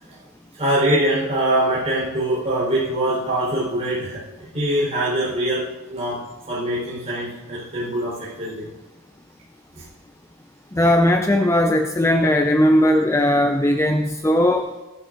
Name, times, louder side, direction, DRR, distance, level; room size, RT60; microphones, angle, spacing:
voice 1, 0.6-4.2 4.5-5.6 5.9-6.2 6.5-8.7, right 1 dB, 30° right, -7 dB, 4.4 m, -23 dB
voice 2, 10.7-14.7, left 1 dB, 10° left, 4 dB, 0.5 m, -18 dB
19.0 x 11.5 x 2.6 m, 1.1 s
head